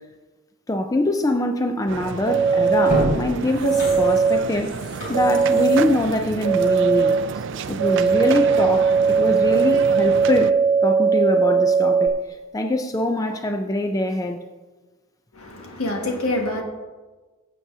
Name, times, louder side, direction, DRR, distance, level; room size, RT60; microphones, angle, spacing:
voice 1, 0.7-4.8 5.1-7.4 7.7-10.6 10.8-12.1 12.5-14.4, left 1 dB, 15° left, 5 dB, 0.4 m, -23 dB
sound 1, 1.9-10.5, right 6 dB, 55° right, 0.4 m, -32 dB
sound 2, 2.3-3.0 3.6-4.4 5.1-5.8 6.4-7.1 7.8-12.1, right 5 dB, 85° right, 0.8 m, -19 dB
sound 3, 2.8-7.4 7.8-7.9, equal, 40° left, 3.5 m, -30 dB
voice 2, 15.3-16.6, left 1 dB, 80° left, 1 dB, 1.7 m, -26 dB
15.5 x 7.4 x 2.7 m, 1.3 s
head